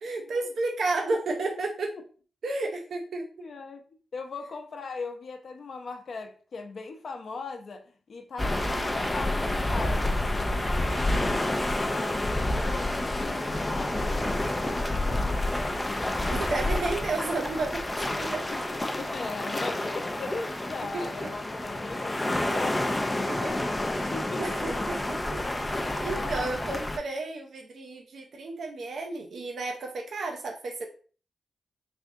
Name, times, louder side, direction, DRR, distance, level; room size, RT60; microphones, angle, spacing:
voice 1, 0.0-1.9 2.4-3.3 16.3-18.4 20.9-21.3 22.5-22.6 23.3-23.6 23.9-25.4 25.7-30.9, right 3 dB, 65° right, 0.5 m, -32 dB
voice 2, 3.4-3.8 4.1-15.9 18.5-22.9 24.1-24.9 26.1-26.7, left 4 dB, 55° left, 0.6 m, -40 dB
sound 1, 8.4-27.0, left 1 dB, 15° left, 0.4 m, -29 dB
3.5 x 3.4 x 2.6 m
wide cardioid pair, 120°, 0 cm